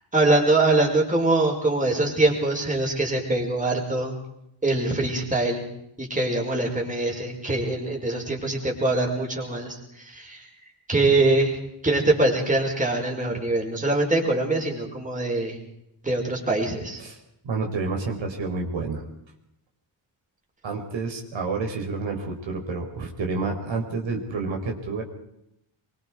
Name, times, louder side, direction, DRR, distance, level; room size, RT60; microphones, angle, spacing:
voice 1, 0.1-4.1 4.6-5.6 6.0-10.5 10.9-11.6 11.8-15.6 16.0-17.0, right 2 dB, 15° right, 0 dB, 5.5 m, -23 dB
voice 2, 17.4-19.0 20.6-25.0, right 4 dB, 65° right, 2 dB, 4.4 m, -29 dB
24.5 x 24.0 x 4.8 m, 0.78 s
wide cardioid pair, 150°, 49 cm